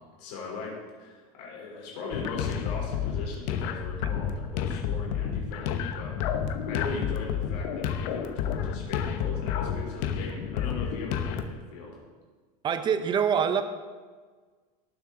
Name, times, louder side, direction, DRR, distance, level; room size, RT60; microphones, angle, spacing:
voice 1, 0.2-12.0, left 3 dB, 80° left, -2 dB, 3.7 m, -39 dB
sound 1, 2.1-11.4, left 8 dB, 55° left, 0.9 m, -30 dB
voice 2, 12.6-13.6, right 7 dB, 20° right, 9 dB, 0.8 m, -25 dB
18.5 x 7.2 x 3.8 m, 1.5 s
supercardioid pair, 150°, 21 cm